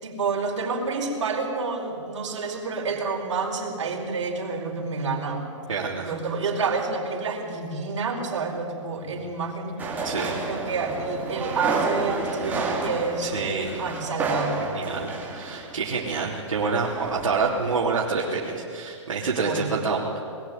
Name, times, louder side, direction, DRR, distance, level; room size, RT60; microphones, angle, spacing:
voice 1, 0.0-5.4 6.0-10.0 10.4-13.3 13.8-14.6 19.3-19.7, right 4 dB, 65° right, 0 dB, 4.8 m, -29 dB
voice 2, 5.7-6.1 10.0-10.5 13.2-13.8 14.7-20.2, right 4 dB, 85° right, -5 dB, 3.3 m, -27 dB
sound 1, 9.8-17.9 18.2-18.5, right 3 dB, 10° right, 2.8 m, -31 dB
21.5 x 15.0 x 9.4 m, 2.4 s
hypercardioid pair, 150°, 16 cm